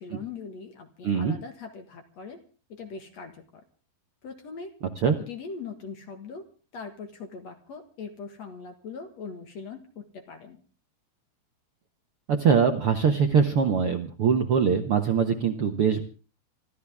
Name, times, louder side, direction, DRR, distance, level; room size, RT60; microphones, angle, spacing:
voice 1, 0.0-2.4 2.7-3.6 4.2-4.7 5.2-6.5 6.7-10.6, left 5 dB, 50° left, 6 dB, 2.3 m, -41 dB
voice 2, 1.0-1.3 5.0-5.2 12.3-16.0, right 6 dB, 90° right, 4 dB, 1.2 m, -22 dB
27.0 x 13.5 x 3.6 m, 0.37 s
omnidirectional pair, 4.7 m